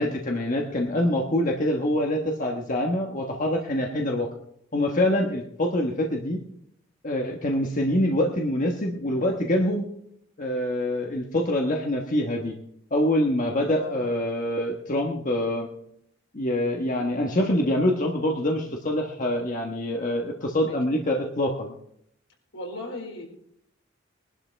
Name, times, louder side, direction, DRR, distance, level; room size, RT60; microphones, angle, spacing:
voice 1, 0.0-4.3 4.7-6.4 7.0-9.9 10.4-12.5 12.9-15.7 16.3-21.7, left 1 dB, 40° left, 1 dB, 1.3 m, -25 dB
voice 2, 13.7-14.0 20.6-20.8 22.5-23.2, left 1 dB, 80° left, 0 dB, 4.7 m, -36 dB
21.0 x 11.5 x 3.3 m, 0.73 s
head